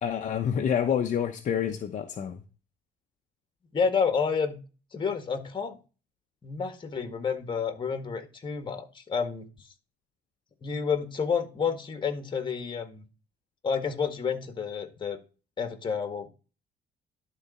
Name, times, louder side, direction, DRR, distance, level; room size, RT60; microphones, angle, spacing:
voice 1, 0.0-2.4, left 8 dB, 45° left, 5 dB, 0.9 m, -28 dB
voice 2, 3.7-4.6 4.9-5.8 6.4-9.5 10.6-13.0 13.6-15.2 15.6-16.3, left 6 dB, 30° left, 8 dB, 1.8 m, -29 dB
11.5 x 4.1 x 5.5 m, 0.33 s
cardioid pair, 110°, 17 cm